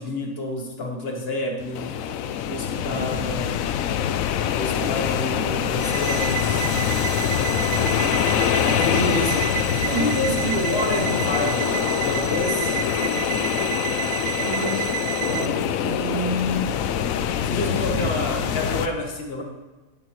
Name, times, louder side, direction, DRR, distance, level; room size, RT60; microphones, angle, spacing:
voice 1, 0.0-2.0 2.5-3.6 4.5-6.7 8.5-9.5 9.9-12.8 17.4-19.4, left 1 dB, 50° left, 2 dB, 1.6 m, -28 dB
sound 1, 1.6-18.9, left 9 dB, 85° left, 1.0 m, -24 dB
voice 2, 2.8-3.2 8.8-9.3 9.7-10.0 10.6-10.8 14.3-16.8 17.7-18.1, right 1 dB, 80° right, 4 dB, 1.4 m, -31 dB
sound 2, 5.8-15.5, right 11 dB, 65° right, 0.8 m, -30 dB
11.0 x 8.9 x 3.1 m, 1.2 s
omnidirectional pair, 1.4 m